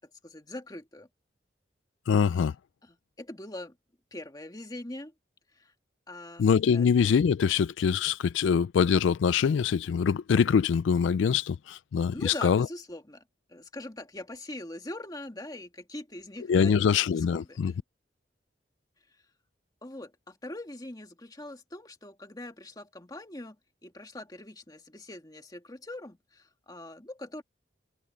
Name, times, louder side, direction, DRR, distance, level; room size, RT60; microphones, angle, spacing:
voice 1, 0.2-1.1 2.3-2.4 2.8-3.8 4.1-5.1 5.5-5.7 6.1-6.5 6.7-6.9 12.1-13.2 13.5-17.6 19.8-23.6 23.8-27.4, left 1 dB, 20° left, 2.0 m, -42 dB
voice 2, 2.1-2.5 6.4-12.7 16.5-17.7, left 6 dB, 85° left, 0.3 m, -24 dB
head